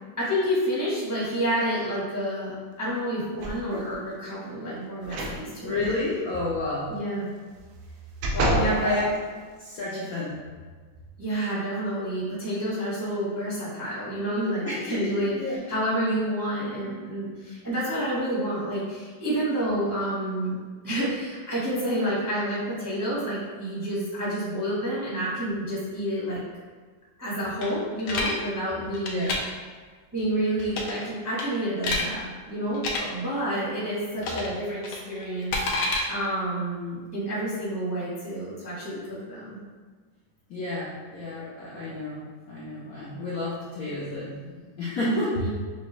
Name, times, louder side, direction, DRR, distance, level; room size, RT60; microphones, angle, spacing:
voice 1, 0.2-5.8 6.9-7.3 8.5-9.0 11.2-15.3 15.7-20.6 20.8-26.4 27.2-29.3 30.1-39.6 45.4-45.5, right 1 dB, 15° right, -9 dB, 0.7 m, -29 dB
sound 1, 3.4-3.9 5.0-5.4 5.8-5.9 7.5-8.8 9.4-9.5, right 1 dB, 80° right, 1.4 m, -28 dB
voice 2, 5.6-7.0 8.3-9.1 9.6-10.3 14.6-15.6 29.1-29.4 40.5-45.4, left 2 dB, 65° left, -8 dB, 0.9 m, -30 dB
sound 2, 27.6-28.4 28.9-29.4 30.7-31.1 31.4-32.1 32.7-33.0 34.2-34.5 34.8-36.0, left 2 dB, 90° left, 1.5 m, -28 dB
5.6 x 2.3 x 3.0 m, 1.5 s
omnidirectional pair, 2.2 m